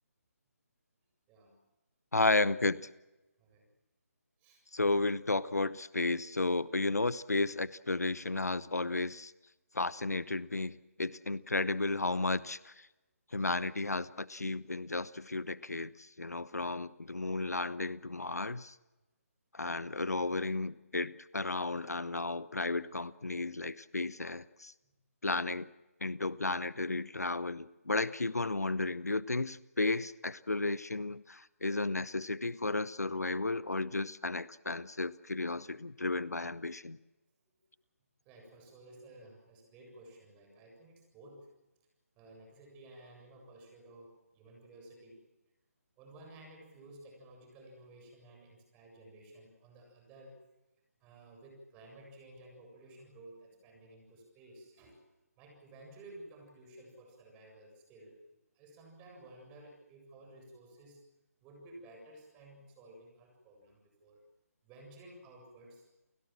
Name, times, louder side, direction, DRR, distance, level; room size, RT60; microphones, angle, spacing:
voice 1, 2.1-2.9 4.7-9.3 9.7-12.9 13.3-18.8 19.5-24.7 25.2-25.7 26.0-37.0, left 2 dB, 85° left, 18 dB, 0.9 m, -33 dB
voice 2, 38.2-41.5 42.2-45.2 46.0-50.3 51.0-55.0 55.4-58.2 58.5-61.0 61.4-64.2 64.6-65.9, right 1 dB, 15° right, 1 dB, 7.6 m, -54 dB
30.0 x 17.0 x 7.6 m, 1.0 s
figure-of-eight pair, 150°, 8 cm